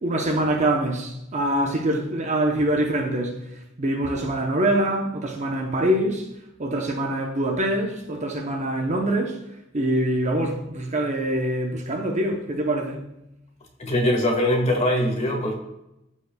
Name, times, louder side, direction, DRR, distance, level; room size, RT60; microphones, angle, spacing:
voice 1, 0.0-3.4 3.8-6.3 6.6-9.4 9.7-13.0, right 1 dB, 35° right, 0.8 m, -24 dB
voice 2, 13.8-15.6, left 1 dB, 35° left, 1.5 m, -22 dB
14.0 x 5.4 x 2.3 m
head